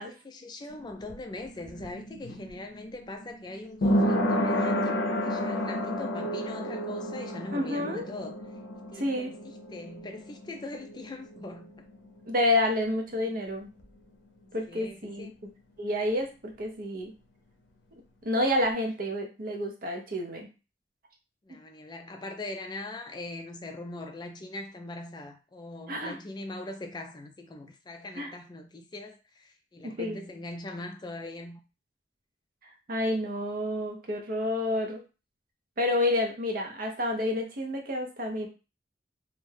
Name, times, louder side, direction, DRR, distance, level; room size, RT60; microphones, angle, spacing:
voice 1, 0.0-8.4 8.9-11.9 14.4-15.3 21.4-31.6, left 2 dB, 25° left, 0.4 m, -41 dB
sound 1, 0.7-12.2 12.5-12.6, equal, 90° left, 0.5 m, -31 dB
voice 2, 7.5-8.0 8.9-9.3 12.3-13.7 14.5-15.5 15.8-17.1 18.2-20.5 25.9-26.2 28.2-28.3 29.8-30.2 32.9-35.0 35.8-38.5, left 1 dB, 55° right, 0.7 m, -29 dB
2.5 x 2.2 x 3.2 m
head